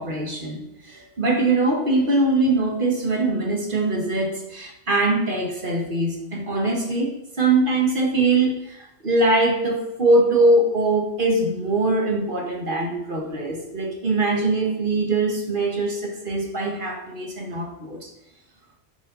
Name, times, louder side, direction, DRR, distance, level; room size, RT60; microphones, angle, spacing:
voice 1, 0.0-18.1, right 2 dB, 45° right, 1 dB, 1.9 m, -22 dB
9.5 x 7.1 x 4.2 m, 0.85 s
omnidirectional pair, 1.3 m